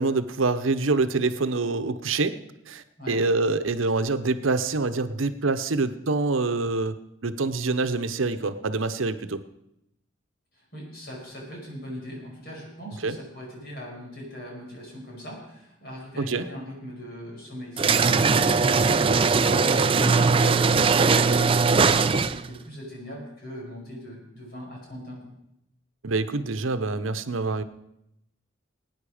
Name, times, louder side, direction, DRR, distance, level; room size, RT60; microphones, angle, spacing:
voice 1, 0.0-2.4 2.7-9.4 13.0-13.2 16.2-16.5 26.0-27.6, right 3 dB, 90° right, 11 dB, 0.8 m, -26 dB
voice 2, 10.5-18.3 18.6-25.2, equal, 50° left, -2 dB, 5.5 m, -40 dB
sound 1, 17.8-22.5, right 4 dB, 25° right, 0.4 m, -20 dB
19.0 x 9.5 x 5.0 m, 0.81 s
head